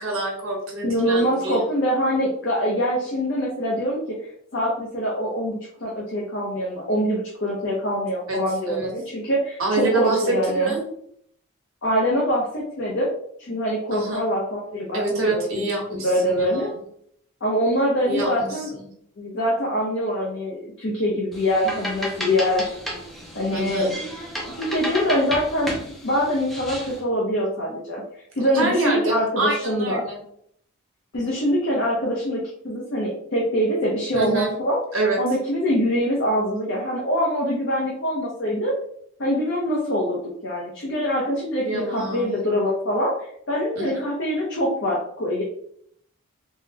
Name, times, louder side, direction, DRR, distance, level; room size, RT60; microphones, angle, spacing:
voice 1, 0.0-1.6 8.3-8.4 8.7-8.9 9.6-10.8 13.9-14.2 14.9-16.7 18.1-18.5 18.8-18.9 23.5-23.9 28.5-30.2 34.1-34.5 34.9-35.2 41.6-42.4 43.8-44.0, right 2 dB, 80° right, -1 dB, 1.1 m, -26 dB
voice 2, 0.8-10.7 11.8-13.1 13.4-15.0 15.3-16.7 17.4-18.7 19.2-22.8 23.3-23.9 24.6-28.0 28.3-30.0 31.1-34.8 35.2-38.7 39.2-43.1 43.5-45.4, equal, 60° left, -4 dB, 0.7 m, -24 dB
sound 1, 21.3-27.0, equal, ahead, 0.4 m, -32 dB
3.6 x 2.1 x 2.8 m, 0.68 s
head